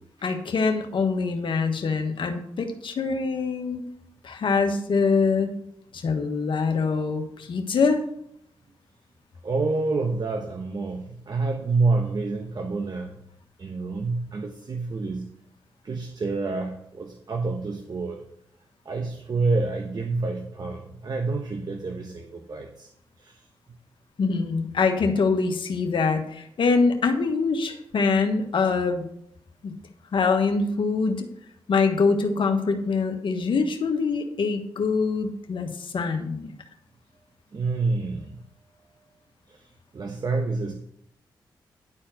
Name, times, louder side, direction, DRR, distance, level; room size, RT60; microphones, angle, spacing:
voice 1, 0.2-3.8 4.2-5.6 5.9-8.0 24.2-29.0 29.6-29.7 30.1-31.3 31.7-36.5, left 4 dB, 65° left, 5 dB, 1.4 m, -24 dB
voice 2, 9.4-13.2 13.6-15.3 15.8-18.2 18.8-22.9 23.2-23.4 37.5-38.4 39.5-39.6 39.9-40.7, right 3 dB, 50° right, 4 dB, 1.1 m, -28 dB
11.0 x 4.4 x 6.3 m, 0.72 s
supercardioid pair, 45°, 9 cm